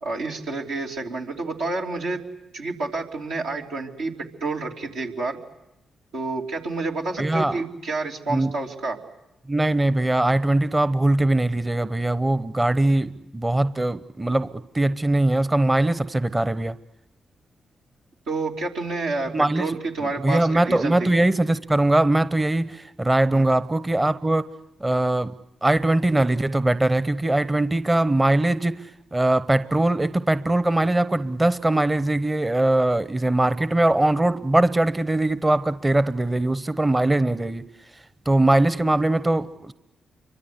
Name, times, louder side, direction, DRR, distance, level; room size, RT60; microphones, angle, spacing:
voice 1, 0.0-2.2 2.5-4.1 4.4-5.4 6.1-9.0 18.3-21.1 23.3-23.5, right 3 dB, 85° right, -3 dB, 3.1 m, -29 dB
voice 2, 7.2-7.5 8.3-8.5 9.5-16.8 19.3-19.7 20.0-24.4 24.8-25.3 25.6-28.8 29.1-37.6 38.3-39.7, right 1 dB, 25° right, 14 dB, 0.9 m, -21 dB
28.5 x 24.5 x 8.2 m, 0.93 s
hypercardioid pair, 40°, 0 cm